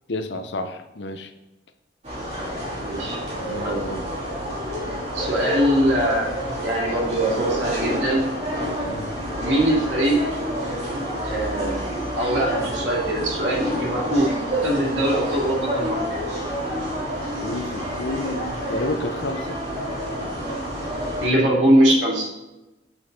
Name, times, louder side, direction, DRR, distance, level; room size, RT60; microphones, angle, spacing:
voice 1, 0.1-1.3 3.5-4.1 8.9-9.1 17.4-19.6, left 2 dB, 70° left, 8 dB, 0.7 m, -30 dB
sound 1, 2.0-21.3, equal, 35° right, 3.0 m, -28 dB
voice 2, 2.8-3.2 3.6-3.8 5.1-6.3 6.6-8.2 9.4-10.2 11.2-11.9 12.2-14.3 14.6-16.0 21.2-22.3, right 1 dB, 80° right, -3 dB, 2.5 m, -22 dB
7.9 x 5.8 x 4.0 m, 1.0 s
head